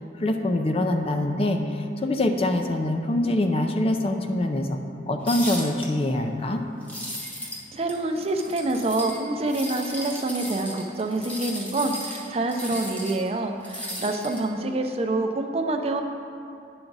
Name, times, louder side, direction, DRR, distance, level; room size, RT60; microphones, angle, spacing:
voice 1, 0.2-4.8 5.1-6.6, left 1 dB, 35° left, 5 dB, 0.5 m, -24 dB
sound 1, 5.3-5.9 6.8-7.6 7.9-9.2 9.5-13.3 13.6-14.5, equal, 10° left, 0.9 m, -36 dB
voice 2, 7.7-16.0, right 2 dB, 35° right, 5 dB, 0.5 m, -26 dB
9.8 x 5.9 x 3.9 m, 2.6 s
head